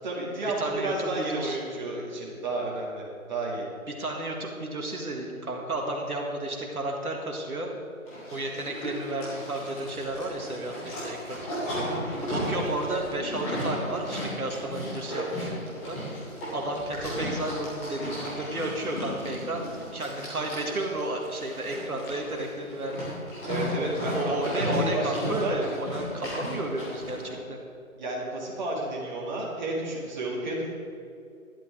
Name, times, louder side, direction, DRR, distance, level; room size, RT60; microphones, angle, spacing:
voice 1, 0.0-3.6 11.7-12.0 23.5-25.6 28.0-30.7, right 2 dB, 30° right, -4 dB, 2.3 m, -32 dB
voice 2, 0.6-1.6 3.9-7.8 8.3-11.4 12.3-15.6 15.9-16.0 16.5-23.2 24.1-27.6, right 1 dB, 90° right, 1 dB, 1.8 m, -32 dB
Livestock farm animals working animals, 8.1-27.3, equal, 10° left, 1.7 m, -35 dB
sound 1, 13.0-19.8, left 3 dB, 30° left, 1.5 m, -43 dB
11.5 x 11.0 x 3.6 m, 2.5 s
figure-of-eight pair, 160°, 43 cm